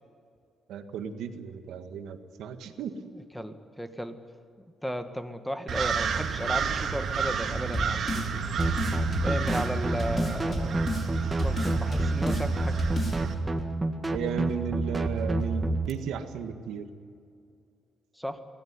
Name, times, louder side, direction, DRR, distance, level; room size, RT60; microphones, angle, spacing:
voice 1, 0.7-2.9 14.1-16.9, right 7 dB, 80° right, 7 dB, 1.8 m, -35 dB
voice 2, 2.8-4.2 4.8-8.4 9.2-10.8 11.2-12.8 18.2-18.4, equal, 5° left, 8 dB, 1.9 m, -35 dB
sound 1, 5.7-13.3, right 6 dB, 60° right, 2.3 m, -31 dB
sound 2, 7.7-8.3 8.6-9.7 10.0-11.1 11.4-12.5 12.8-13.2, left 2 dB, 40° left, 5.0 m, -32 dB
sound 3, 8.6-15.9, right 2 dB, 20° right, 1.8 m, -29 dB
23.0 x 17.0 x 9.7 m, 2.4 s
cardioid pair, 90°, 0 cm